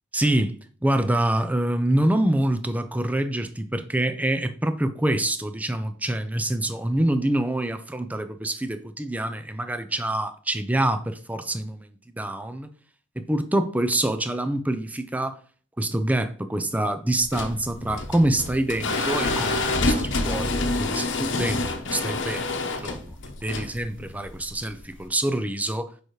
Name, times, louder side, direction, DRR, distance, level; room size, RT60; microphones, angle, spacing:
voice 1, 0.1-12.7 13.2-15.3 15.8-23.1 23.4-25.9, right 1 dB, 10° right, 0.5 m, -26 dB
sound 1, 17.2-25.1, left 2 dB, 70° left, 0.9 m, -27 dB
6.8 x 4.9 x 3.2 m
head